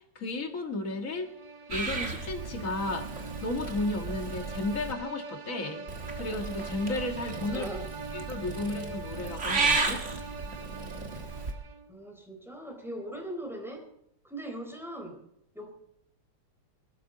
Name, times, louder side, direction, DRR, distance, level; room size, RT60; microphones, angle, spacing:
voice 1, 0.0-1.3 1.7-3.1 3.4-5.8 6.2-7.7 8.1-10.0, left 2 dB, 40° left, 5 dB, 2.0 m, -33 dB
sound 1, 1.0-12.0, right 3 dB, 65° right, 0.4 m, -43 dB
Purr / Meow, 1.7-4.9 5.9-11.5, right 4 dB, 35° right, 1.9 m, -34 dB
voice 2, 7.5-7.9 11.9-13.9 14.2-15.2 15.5-15.7, right 1 dB, ahead, 2 dB, 3.8 m, -40 dB
21.0 x 13.0 x 3.9 m, 0.74 s
omnidirectional pair, 2.3 m